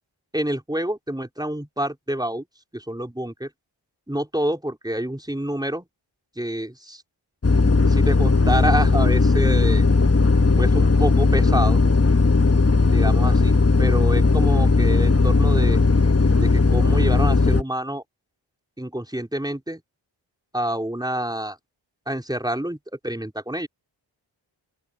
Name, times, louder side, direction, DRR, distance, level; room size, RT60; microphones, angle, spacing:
voice 1, 0.3-2.4 2.7-3.5 4.1-5.9 6.4-7.0 7.9-9.8 10.6-11.8 12.9-15.8 16.4-18.0 18.8-19.8 20.5-21.6 22.1-22.8 23.0-23.7, right 1 dB, 10° right, 4.2 m, -27 dB
sound 1, 7.4-17.6, left 3 dB, 30° left, 1.3 m, -17 dB
open air
cardioid pair, 50°, 48 cm